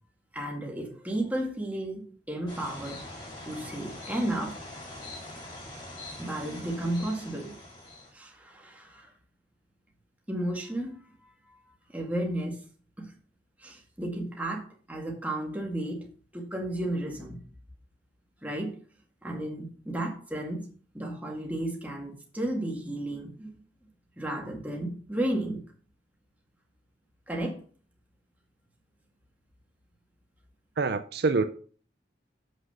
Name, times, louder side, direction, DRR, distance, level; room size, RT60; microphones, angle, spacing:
voice 1, 0.3-3.0 3.4-4.6 6.2-7.5 8.1-9.1 10.3-11.6 11.9-12.6 13.0-13.1 13.6-16.1 16.3-17.4 18.4-18.8 19.2-20.7 20.9-23.5 24.2-25.6 27.3-27.6, right 1 dB, 10° right, 2.1 m, -33 dB
sound 1, 2.5-8.1, left 1 dB, 25° left, 3.9 m, -43 dB
voice 2, 30.8-31.5, right 4 dB, 65° right, 0.6 m, -25 dB
7.8 x 6.2 x 5.8 m
head